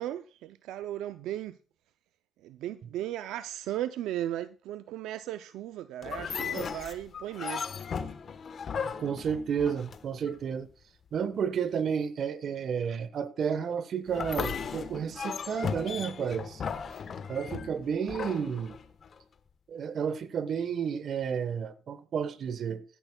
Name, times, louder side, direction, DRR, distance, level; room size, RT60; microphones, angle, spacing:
voice 1, 0.0-1.5 2.4-7.7, right 12 dB, 90° right, 0.4 m, -36 dB
sound 1, 6.0-10.3 14.1-19.2, left 6 dB, 50° left, 1.0 m, -36 dB
voice 2, 8.8-10.7 11.1-16.6 17.3-18.8 19.7-22.8, right 7 dB, 60° right, 1.0 m, -31 dB
15.5 x 10.5 x 2.2 m
cardioid pair, 90°, 0 cm